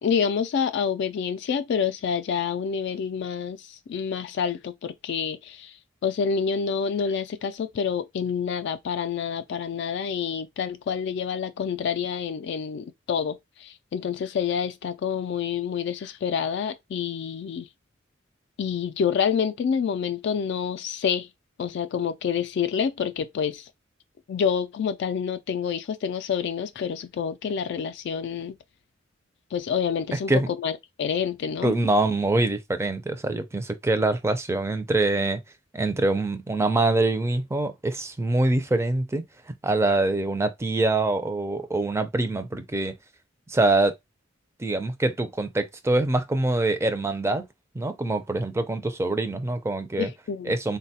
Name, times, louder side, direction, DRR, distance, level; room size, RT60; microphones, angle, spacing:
voice 1, 0.0-5.8 6.0-17.7 18.6-21.3 21.6-23.7 24.3-28.6 29.5-31.7 50.0-50.6, left 7 dB, 60° left, 0.3 m, -28 dB
voice 2, 30.1-30.5 31.6-35.4 35.7-39.2 39.6-42.9 43.5-43.9 44.6-47.5 47.7-50.1 50.4-50.8, right 2 dB, 15° right, 0.4 m, -24 dB
3.8 x 2.2 x 2.7 m
head